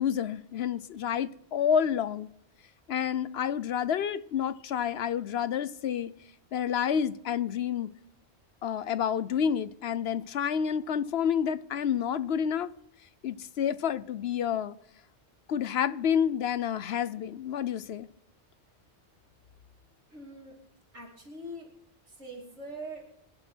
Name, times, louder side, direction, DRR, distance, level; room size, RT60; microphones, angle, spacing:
voice 1, 0.0-2.3 2.9-6.1 6.5-7.9 8.6-12.7 13.2-14.7 15.5-18.1, left 8 dB, 65° left, 0.9 m, -29 dB
voice 2, 20.1-20.5 20.9-21.7 22.1-23.0, right 1 dB, 85° right, 3.1 m, -42 dB
25.5 x 10.5 x 4.5 m
omnidirectional pair, 1.2 m